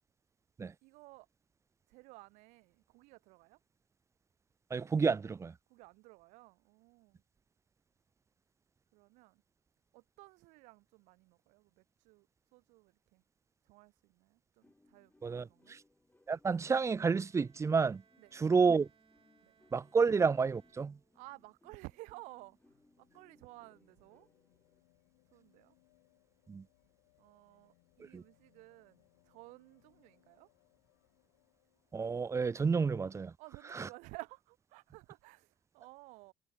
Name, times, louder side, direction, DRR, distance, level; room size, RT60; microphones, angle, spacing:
voice 1, 0.8-1.3 1.9-3.6 5.7-7.2 8.9-9.4 9.9-12.3 12.5-13.2 13.6-15.8 18.2-18.3 19.4-19.6 21.1-22.6 23.0-24.3 25.3-25.7 27.2-30.5 33.4-36.3, right 24 dB, 80° right, 1.7 m, -55 dB
voice 2, 4.7-5.5 15.2-15.8 16.3-18.0 18.3-18.9 19.7-21.0 26.5-26.6 28.1-28.2 31.9-33.3 33.7-33.9, right 5 dB, 25° right, 0.4 m, -30 dB
sound 1, 14.6-24.8, left 2 dB, 15° left, 4.6 m, -69 dB
Bowed string instrument, 17.1-21.6, right 7 dB, 45° right, 3.9 m, -70 dB
sound 2, 21.8-32.6 33.8-33.9, left 26 dB, 85° left, 5.6 m, -73 dB
hypercardioid pair, 60°, 12 cm